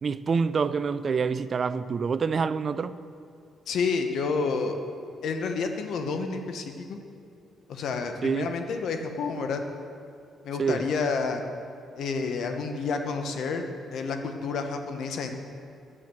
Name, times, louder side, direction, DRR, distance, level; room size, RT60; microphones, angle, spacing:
voice 1, 0.0-2.9 8.2-8.5 10.6-10.8, right 5 dB, 45° right, 14 dB, 0.4 m, -26 dB
voice 2, 3.7-4.8 5.2-7.0 7.7-9.6 10.4-11.4 12.0-15.3, left 4 dB, 70° left, 5 dB, 1.1 m, -29 dB
10.0 x 7.4 x 7.4 m, 2.5 s
cardioid pair, 90°, 0 cm